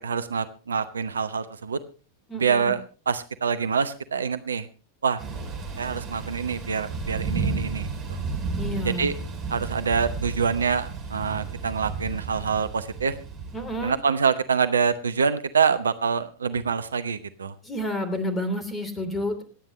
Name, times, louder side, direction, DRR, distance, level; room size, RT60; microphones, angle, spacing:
voice 1, 0.0-1.8 2.3-4.7 5.0-5.2 5.8-8.2 8.8-9.1 9.5-13.2 13.8-17.5, right 6 dB, 70° right, 12 dB, 0.8 m, -26 dB
voice 2, 2.3-2.7 8.6-9.2 13.5-14.0 17.6-19.4, left 1 dB, 15° left, 10 dB, 3.1 m, -30 dB
Thunder / Rain, 5.2-14.0, right 4 dB, 35° right, 7.6 m, -33 dB
26.0 x 9.2 x 3.1 m, 0.36 s
figure-of-eight pair, 90°, 0 cm